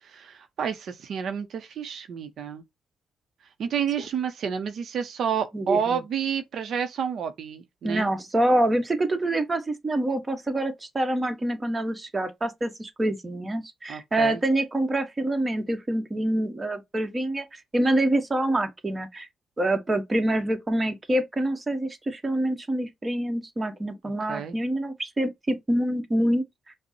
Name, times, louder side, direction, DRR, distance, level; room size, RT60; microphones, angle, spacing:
voice 1, 0.0-2.6 3.6-8.1 13.9-14.4 24.3-24.6, right 7 dB, 70° right, 0.5 m, -30 dB
voice 2, 5.5-6.0 7.8-19.3 19.6-26.7, right 1 dB, 25° right, 0.9 m, -26 dB
5.1 x 2.0 x 2.7 m
cardioid pair, 70°, 0 cm